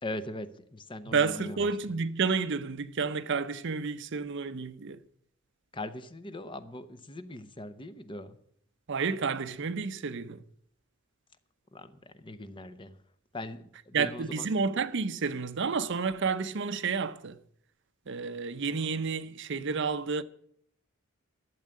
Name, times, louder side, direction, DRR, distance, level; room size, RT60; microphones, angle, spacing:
voice 1, 0.0-1.7 5.7-8.4 11.7-13.0 13.3-14.5, left 1 dB, 25° left, 0.8 m, -40 dB
voice 2, 1.1-5.0 8.9-10.4 13.9-17.4 18.1-20.2, right 5 dB, 60° right, 0.6 m, -30 dB
12.5 x 7.4 x 8.7 m
head